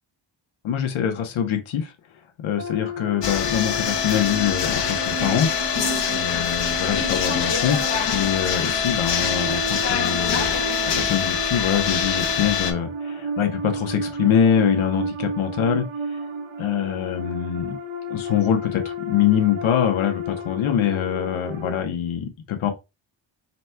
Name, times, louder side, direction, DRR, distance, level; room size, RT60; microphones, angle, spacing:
voice 1, 0.6-1.9 2.4-5.5 6.1-10.5 10.9-16.2 16.6-17.7 18.1-22.7, left 9 dB, 90° left, 0.9 m, -24 dB
sound 1, 2.6-21.8, right 1 dB, 80° right, 1.0 m, -32 dB
sound 2, 3.2-12.7, left 7 dB, 65° left, 0.9 m, -24 dB
4.1 x 2.2 x 4.2 m
wide cardioid pair, 125°, 47 cm